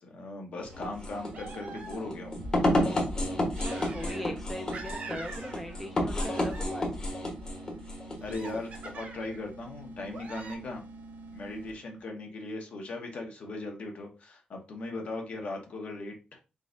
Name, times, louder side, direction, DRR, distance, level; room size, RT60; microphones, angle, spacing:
voice 1, 0.0-2.3 8.2-10.8 11.3-16.4, left 2 dB, 55° left, 2 dB, 1.1 m, -38 dB
sound 1, 0.6-12.0, right 2 dB, 90° right, 0.9 m, -48 dB
sound 2, 0.7-8.9, left 1 dB, 30° left, 1.1 m, -31 dB
sound 3, 1.3-2.3 3.5-4.4 4.7-5.9 6.1-7.0 8.2-9.4 10.1-10.5, right 4 dB, 60° right, 1.1 m, -45 dB
voice 2, 3.6-6.9, left 1 dB, 5° left, 4 dB, 0.5 m, -40 dB
4.0 x 3.9 x 2.5 m, 0.30 s
wide cardioid pair, 155°, 3 cm